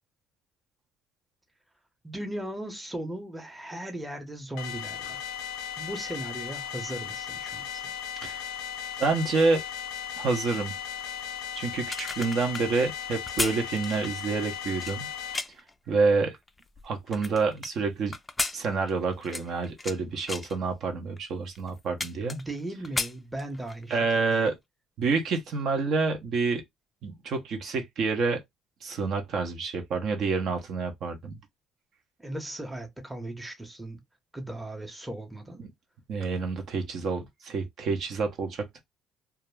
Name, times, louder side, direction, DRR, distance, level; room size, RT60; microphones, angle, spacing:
voice 1, 2.0-5.2 5.8-7.9 22.3-24.0 24.3-24.5 32.2-34.0 34.3-35.6, right 1 dB, 10° right, 0.7 m, -37 dB
sound 1, 4.6-15.4, left 8 dB, 90° left, 0.5 m, -36 dB
voice 2, 9.0-9.6 10.2-10.7 11.6-15.1 15.9-16.4 16.8-18.1 18.5-22.4 23.9-24.5 25.0-26.6 27.0-28.4 28.8-31.4 35.6-35.7 36.1-38.8, right 4 dB, 60° right, 0.7 m, -28 dB
sound 2, 11.7-15.7 16.3-17.7 18.1-20.0 20.3-20.6 21.2-21.3 21.5-22.6 22.8-23.8 24.2-24.4, left 3 dB, 15° left, 0.3 m, -34 dB
2.3 x 2.0 x 3.2 m
cardioid pair, 100°, 0 cm